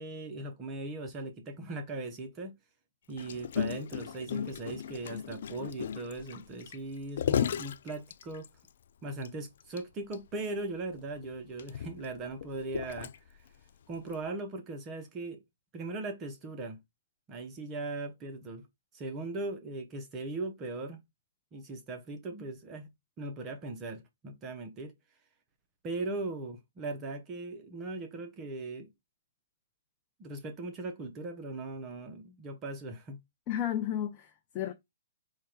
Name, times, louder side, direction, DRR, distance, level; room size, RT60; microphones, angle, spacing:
voice 1, 0.0-2.5 3.1-8.5 9.0-13.5 13.9-15.4 15.7-16.8 17.3-18.6 18.9-21.0 21.5-22.9 23.2-24.9 25.8-28.9 30.2-33.2, right 2 dB, 25° right, 0.7 m, -39 dB
Gurgling, 3.2-8.7 9.2-9.3 9.6-9.8 10.1-10.2 11.0-13.5 14.1-14.3, left 8 dB, 65° left, 0.4 m, -35 dB
voice 2, 33.5-34.7, left 11 dB, 30° left, 0.6 m, -33 dB
4.7 x 2.3 x 4.4 m
hypercardioid pair, 145°, 0 cm